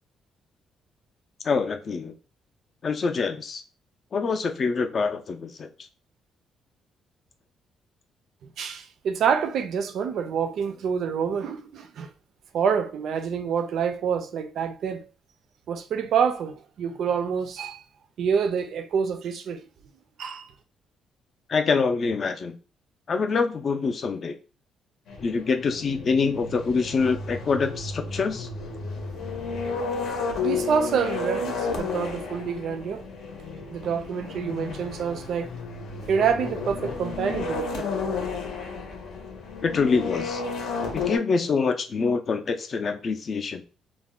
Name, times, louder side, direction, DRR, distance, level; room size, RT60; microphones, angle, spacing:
voice 1, 1.4-2.1 2.8-3.6 4.1-5.7 21.5-22.5 23.1-24.4 25.2-28.5 39.6-40.4 40.9-43.6, left 4 dB, 35° left, 0.4 m, -25 dB
voice 2, 8.6-12.1 12.5-15.0 15.7-17.8 18.2-19.7 20.2-20.5 30.4-33.0 33.7-35.5 36.1-37.9, right 7 dB, 60° right, 0.4 m, -27 dB
sound 1, 25.1-41.2, left 4 dB, 65° left, 0.7 m, -32 dB
2.4 x 2.1 x 3.5 m
cardioid pair, 155°, 0 cm